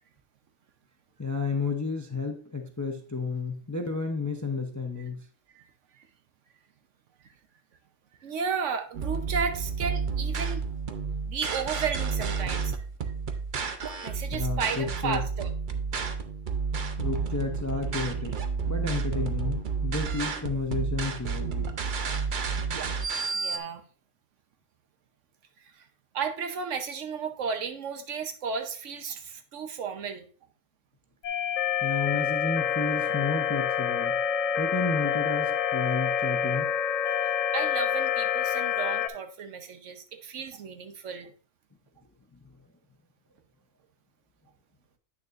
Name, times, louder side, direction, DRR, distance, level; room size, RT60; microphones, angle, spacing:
voice 1, 1.2-5.2 14.3-15.2 17.0-18.3 18.7-21.7 31.8-34.2 34.6-36.7, left 4 dB, 20° left, 4 dB, 0.5 m, -31 dB
voice 2, 8.2-10.6 11.2-12.7 14.0-15.5 23.3-23.8 25.6-25.9 26.1-30.3 37.5-41.3, right 6 dB, 70° right, 6 dB, 1.1 m, -33 dB
sound 1, 8.9-23.6, right 5 dB, 50° right, 0.7 m, -31 dB
sound 2, 31.2-39.1, left 8 dB, 85° left, 1.1 m, -27 dB
8.8 x 6.5 x 2.5 m, 0.41 s
omnidirectional pair, 1.3 m